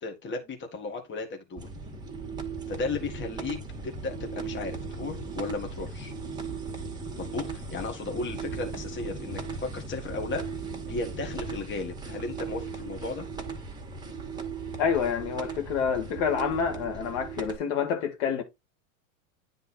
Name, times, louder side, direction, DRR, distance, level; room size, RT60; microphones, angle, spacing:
voice 1, 0.0-1.7 2.7-3.6 3.8-6.1 7.2-10.4 10.9-13.3, left 3 dB, 25° left, 1.9 m, -35 dB
sound 1, 1.6-17.6, right 4 dB, 10° right, 1.8 m, -37 dB
voice 2, 14.8-18.4, left 7 dB, 60° left, 2.1 m, -28 dB
9.5 x 3.9 x 4.3 m
hypercardioid pair, 110°, 41 cm